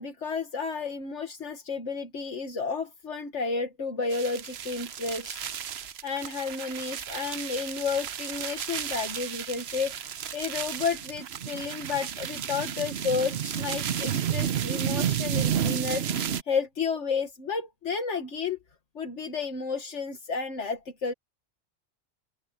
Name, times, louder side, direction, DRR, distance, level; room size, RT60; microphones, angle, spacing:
voice 1, 0.0-9.9 10.3-18.6 19.0-21.1, left 5 dB, 80° left, 2.0 m, -32 dB
sound 1, 4.1-16.4, right 9 dB, 65° right, 1.0 m, -32 dB
omnidirectional pair, 1.2 m